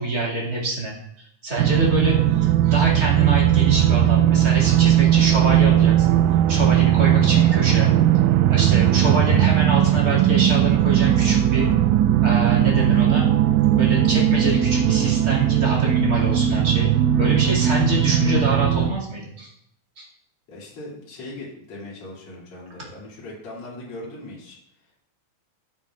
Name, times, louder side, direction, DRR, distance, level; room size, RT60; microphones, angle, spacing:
voice 1, 0.0-6.2 6.5-7.9 8.5-11.7 12.2-13.3 13.7-16.9 17.2-19.5 20.0-20.1, right 2 dB, 30° right, -5 dB, 2.4 m, -25 dB
sound 1, 1.6-18.9, right 11 dB, 85° right, 1.7 m, -18 dB
voice 2, 20.5-24.6, left 2 dB, 45° left, -6 dB, 3.6 m, -39 dB
14.0 x 7.6 x 2.4 m, 0.72 s
omnidirectional pair, 3.7 m